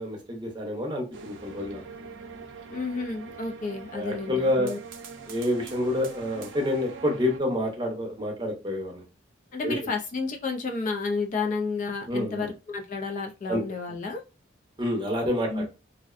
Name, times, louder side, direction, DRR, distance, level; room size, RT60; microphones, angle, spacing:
voice 1, 0.0-1.8 3.9-4.7 5.3-9.0 9.6-9.8 12.1-12.5 13.5-13.6 14.8-15.7, left 1 dB, 25° right, 1 dB, 0.6 m, -28 dB
sound 1, 1.1-7.4, right 4 dB, 70° right, 0.5 m, -43 dB
voice 2, 2.7-4.8 9.5-14.2 15.5-15.7, left 4 dB, 40° left, 3 dB, 0.3 m, -31 dB
2.5 x 2.1 x 2.4 m, 0.28 s
head